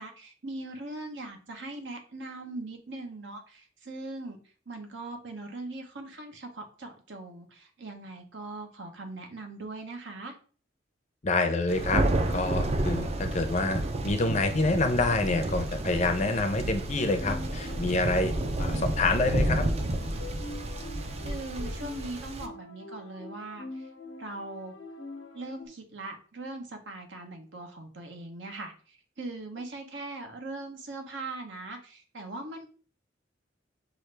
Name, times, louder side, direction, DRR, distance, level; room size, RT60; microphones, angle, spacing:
voice 1, 0.0-4.4 4.7-10.3 21.2-23.9 24.2-24.7 25.3-32.7, right 2 dB, 70° right, 3 dB, 1.0 m, -40 dB
voice 2, 11.2-12.0 12.3-18.3 18.6-19.6, left 2 dB, 40° left, 7 dB, 0.6 m, -27 dB
Thunder, 11.7-22.5, right 1 dB, 35° right, 0.5 m, -31 dB
sound 1, 16.9-25.7, left 2 dB, 90° left, 1.1 m, -44 dB
6.1 x 2.6 x 3.3 m, 0.40 s
head